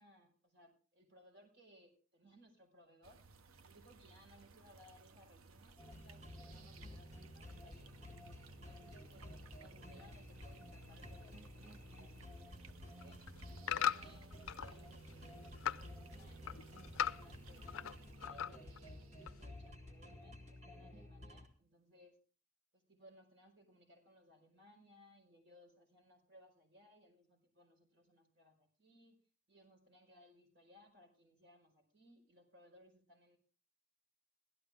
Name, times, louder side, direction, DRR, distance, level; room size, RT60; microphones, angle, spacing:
voice 1, 0.0-3.2 3.6-7.9 8.5-13.2 13.6-17.7 18.2-22.2 22.7-29.2 29.5-33.4, equal, 55° right, 3 dB, 4.9 m, -65 dB
sound 1, 3.0-21.2, right 4 dB, 80° right, 0.8 m, -60 dB
sound 2, 5.8-21.5, left 1 dB, 35° right, 2.1 m, -53 dB
sound 3, 12.9-14.7 15.1-15.9 16.2-18.0 18.2-18.8 19.3-19.4, left 9 dB, 75° left, 0.5 m, -39 dB
16.5 x 13.0 x 3.5 m, 0.37 s
head